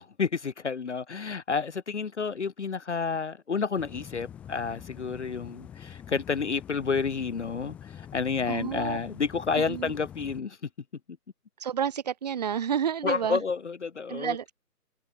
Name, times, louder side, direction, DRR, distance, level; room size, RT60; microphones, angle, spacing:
voice 1, 0.2-10.6 13.0-14.4, left 5 dB, 45° left, 1.1 m, -30 dB
sound 1, 3.8-10.4, left 9 dB, 5° left, 1.2 m, -45 dB
voice 2, 8.5-9.0 9.6-9.9 11.6-13.4 14.1-14.5, right 8 dB, 25° right, 1.7 m, -30 dB
figure-of-eight pair, 160°, 48 cm